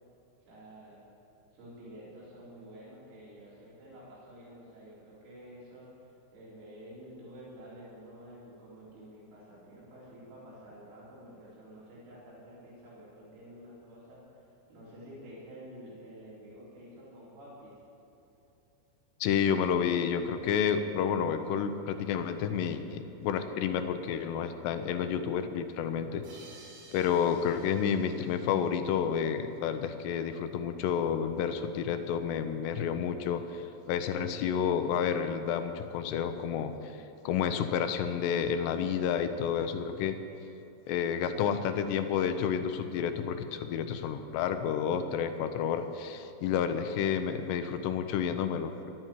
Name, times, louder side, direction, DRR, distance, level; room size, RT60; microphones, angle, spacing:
voice 1, 0.5-1.0 1.5-17.8, equal, 80° right, -8 dB, 6.5 m, -50 dB
voice 2, 19.2-26.2 26.9-33.6 33.9-36.7 37.3-40.2 40.9-48.9, left 7 dB, 80° left, 8 dB, 2.6 m, -30 dB
sound 1, 26.2-29.6, right 3 dB, 55° right, 2.7 m, -55 dB
18.5 x 12.5 x 4.6 m, 2.9 s
omnidirectional pair, 5.6 m